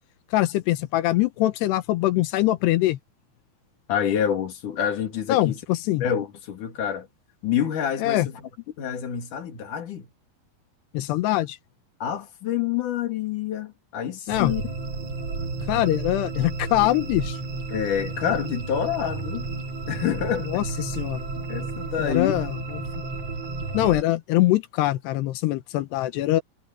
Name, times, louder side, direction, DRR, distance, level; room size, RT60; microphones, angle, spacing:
voice 1, 0.3-3.0 5.3-6.0 8.0-8.3 10.9-11.6 14.3-14.5 15.7-17.4 20.4-21.3 22.0-22.8 23.7-26.4, left 16 dB, 90° left, 3.2 m, -23 dB
voice 2, 3.9-5.6 6.0-7.1 7.4-8.4 8.8-10.1 12.0-14.6 17.7-19.5 19.9-20.7 21.5-22.4, left 9 dB, 55° left, 3.9 m, -27 dB
sound 1, 14.3-24.0, right 3 dB, 40° right, 5.0 m, -32 dB
omnidirectional pair, 4.6 m